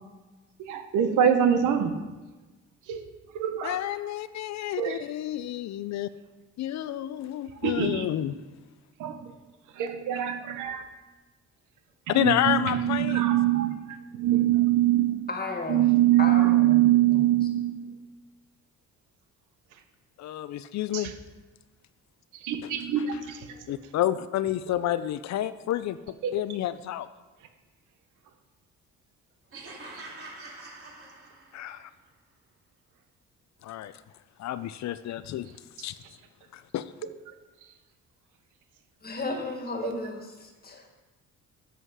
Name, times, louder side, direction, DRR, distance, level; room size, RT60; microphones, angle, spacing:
voice 1, 0.6-1.9 2.9-3.0 3.3-3.8 4.8-5.0 7.6-8.1 9.0-9.2 9.8-10.8 12.1-13.8 14.1-15.2 15.7-17.9 20.9-21.1 22.4-23.5 26.2-26.4 29.5-29.6 29.9-30.0, right 12 dB, 90° right, 8 dB, 1.0 m, -23 dB
voice 2, 3.6-6.1 6.6-8.3 12.1-13.2 20.2-21.1 23.1-23.2 23.7-27.1 31.5-31.9 33.6-33.9 34.4-35.5 35.8-36.0 36.5-36.9, left 12 dB, 65° left, 14 dB, 0.5 m, -29 dB
voice 3, 15.3-15.9 16.2-17.5 39.0-40.9, left 2 dB, 30° left, 3 dB, 1.7 m, -34 dB
sound 1, 29.5-31.8, right 2 dB, 50° right, 2.7 m, -45 dB
7.9 x 7.8 x 4.8 m, 1.2 s
cardioid pair, 90°, 30 cm